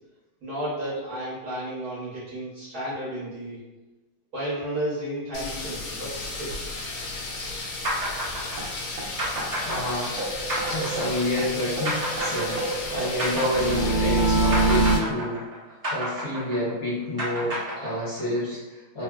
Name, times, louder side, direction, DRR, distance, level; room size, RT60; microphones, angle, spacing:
voice 1, 0.4-3.6 4.3-6.5 12.1-12.3, right 1 dB, 55° right, -9 dB, 1.2 m, -32 dB
sound 1, 5.3-15.0, left 2 dB, 85° left, 1.5 m, -34 dB
sound 2, 7.8-14.2 14.5-18.4, right 1 dB, 40° right, 0.4 m, -30 dB
sound 3, 8.6-8.7 9.0-9.1 9.4-9.5 9.8-9.9 10.2-11.5 11.8-15.0, right 2 dB, 80° right, 0.8 m, -26 dB
voice 2, 9.6-10.1 10.7-15.4 15.9-19.0, left 1 dB, 60° left, -9 dB, 1.1 m, -29 dB
3.5 x 2.1 x 2.2 m, 1.1 s
omnidirectional pair, 2.3 m